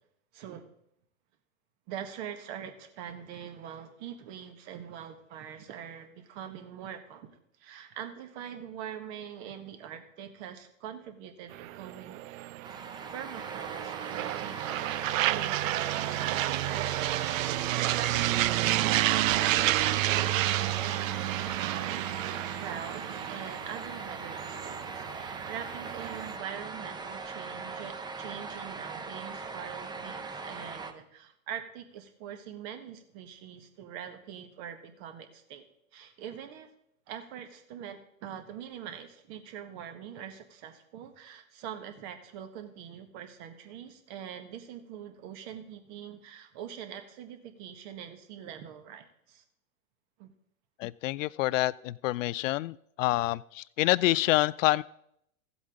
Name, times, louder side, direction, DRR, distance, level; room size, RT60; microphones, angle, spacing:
voice 1, 0.3-0.6 1.9-7.3 7.6-12.2 13.1-14.8 15.3-35.6 35.9-36.7 37.1-49.4 50.2-50.3, right 9 dB, 50° right, 7 dB, 1.7 m, -43 dB
sound 1, 11.5-26.4, right 15 dB, 70° right, 0.5 m, -30 dB
sound 2, 12.6-30.9, right 4 dB, 10° right, 0.6 m, -40 dB
voice 2, 50.8-54.8, left 17 dB, 65° left, 20 dB, 0.5 m, -27 dB
15.0 x 8.0 x 3.7 m, 0.74 s
hypercardioid pair, 115°, 41 cm